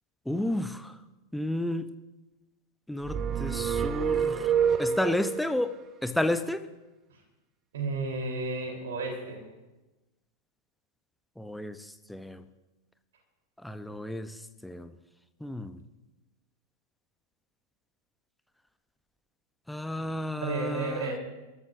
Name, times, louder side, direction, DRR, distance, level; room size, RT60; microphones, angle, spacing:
voice 1, 0.3-0.9 1.3-1.9 2.9-4.5 4.8-5.7 6.0-6.7 11.4-12.4 13.6-14.9 15.4-15.8 19.7-21.1, left 1 dB, 5° left, 10 dB, 0.8 m, -32 dB
sound 1, 3.0-5.5, right 7 dB, 25° right, 0.8 m, -27 dB
voice 2, 7.7-9.4 19.9-20.0 20.4-21.2, right 3 dB, 60° right, 2 dB, 3.6 m, -32 dB
29.0 x 13.5 x 2.6 m, 1.1 s
figure-of-eight pair, 90°, 0 cm